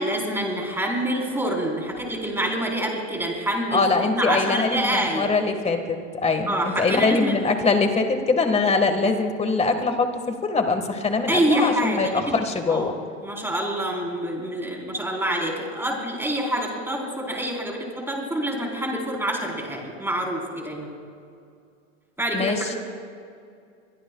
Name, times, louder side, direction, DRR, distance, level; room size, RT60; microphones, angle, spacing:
voice 1, 0.0-5.3 6.5-7.4 11.3-12.4 12.7-12.9 13.2-20.9 22.2-22.8, right 1 dB, 5° right, -1 dB, 4.0 m, -26 dB
voice 2, 3.7-10.1 10.4-12.9 22.3-22.6, left 3 dB, 15° left, 6 dB, 1.6 m, -23 dB
25.0 x 23.0 x 2.3 m, 2.4 s
supercardioid pair, 120°, 38 cm